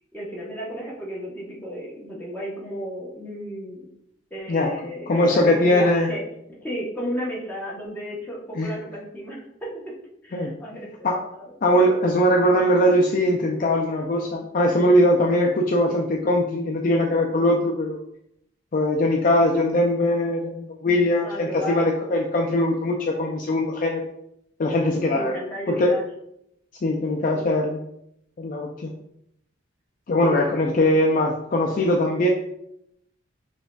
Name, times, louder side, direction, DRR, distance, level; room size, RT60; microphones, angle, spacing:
voice 1, 0.1-3.9 4.3-6.2 6.5-9.7 10.2-11.5 21.2-21.9 25.1-26.0 27.3-27.5 30.2-30.5, equal, 10° left, -5 dB, 0.9 m, -33 dB
voice 2, 5.1-6.1 8.6-8.7 10.3-10.5 11.0-11.2 11.6-18.0 18.7-24.0 24.6-25.3 25.7-26.0 26.8-27.8 28.4-28.9 30.1-32.3, left 1 dB, 45° left, 0 dB, 0.3 m, -21 dB
6.1 x 2.5 x 2.3 m, 0.77 s
head